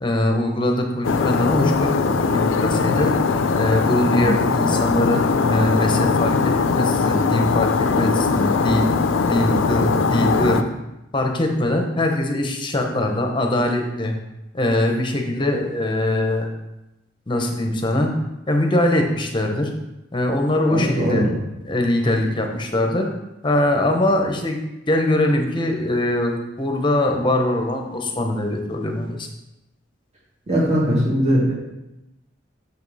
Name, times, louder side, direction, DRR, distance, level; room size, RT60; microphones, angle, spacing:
voice 1, 0.0-3.1 3.5-10.6 11.1-14.1 14.5-16.5 17.3-18.1 18.5-19.7 20.1-21.2 21.6-23.1 23.4-24.6 24.9-29.3, left 1 dB, 25° left, 3 dB, 0.8 m, -22 dB
sound 1, 1.0-10.6, left 4 dB, 90° left, 0.4 m, -20 dB
voice 2, 4.1-4.4 20.7-21.3 30.5-31.5, equal, 35° right, -6 dB, 2.5 m, -20 dB
6.7 x 5.2 x 4.1 m, 0.94 s
head